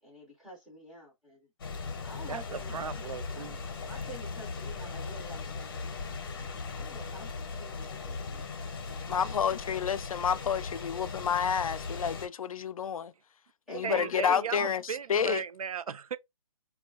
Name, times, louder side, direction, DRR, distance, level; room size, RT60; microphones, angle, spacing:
voice 1, 0.0-1.5 2.0-8.4 8.8-9.6 13.7-14.5, right 1 dB, ahead, 0.4 m, -48 dB
sound 1, 1.6-12.3, left 4 dB, 40° left, 0.7 m, -38 dB
voice 2, 2.3-3.6 13.8-16.2, right 6 dB, 80° right, 0.4 m, -36 dB
voice 3, 9.1-13.1 13.7-14.8 15.1-15.4, left 7 dB, 80° left, 0.4 m, -29 dB
4.3 x 2.3 x 2.2 m
hypercardioid pair, 160°, 18 cm